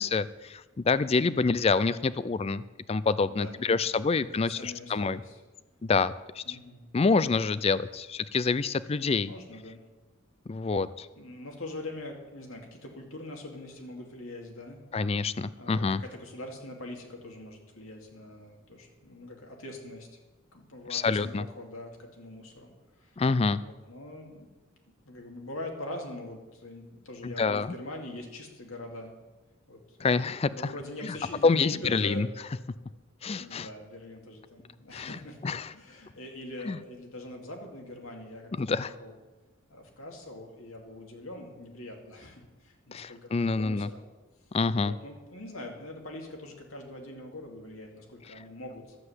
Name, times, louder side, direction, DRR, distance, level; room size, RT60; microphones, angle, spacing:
voice 1, 0.0-2.6 2.9-5.2 5.8-6.6 6.9-9.3 10.5-11.1 14.9-16.0 20.9-21.4 23.2-23.6 27.2-27.7 30.0-30.7 31.0-31.1 31.4-32.3 33.2-33.7 34.9-35.7 36.7-36.8 38.6-38.9 42.9-43.9 44.5-44.9, left 4 dB, 30° left, 17 dB, 0.4 m, -27 dB
voice 2, 3.3-5.4 6.5-6.8 9.2-9.8 11.1-14.8 15.6-20.1 20.5-22.7 23.0-24.5 25.0-29.2 29.7-32.2 33.3-35.4 35.7-39.1 39.7-44.0 44.7-49.0, left 1 dB, 85° left, 1 dB, 2.4 m, -43 dB
12.0 x 7.8 x 7.9 m, 1.1 s
head